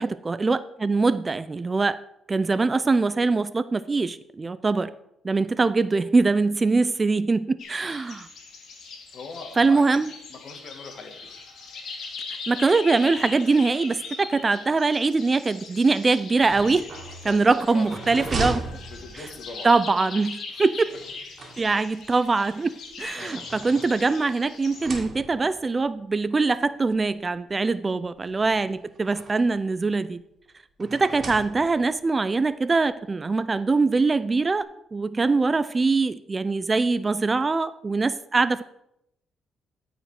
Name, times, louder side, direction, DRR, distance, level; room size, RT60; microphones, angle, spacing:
voice 1, 0.0-2.0 2.3-4.9 5.2-8.3 9.6-10.1 12.5-16.8 17.2-18.6 19.6-20.9 21.6-22.7 23.0-30.2 30.8-34.7 34.9-38.6, right 3 dB, 30° right, 15 dB, 0.4 m, -23 dB
sound 1, 7.6-24.9, left 4 dB, 70° left, 2.4 m, -40 dB
voice 2, 9.1-10.0 10.3-11.1 17.2-17.4 17.7-18.3 18.9-19.7 20.5-20.6 23.1-23.4 27.8-28.0, left 3 dB, 50° left, 5 dB, 1.7 m, -41 dB
sound 2, 16.3-19.6 20.9-22.1 22.9-24.3 24.7-25.6 26.5-26.6 27.0-27.1 28.2-29.6 30.8-32.0, right 2 dB, 50° right, 2.1 m, -37 dB
13.5 x 5.0 x 4.8 m, 0.80 s
cardioid pair, 90°, 0 cm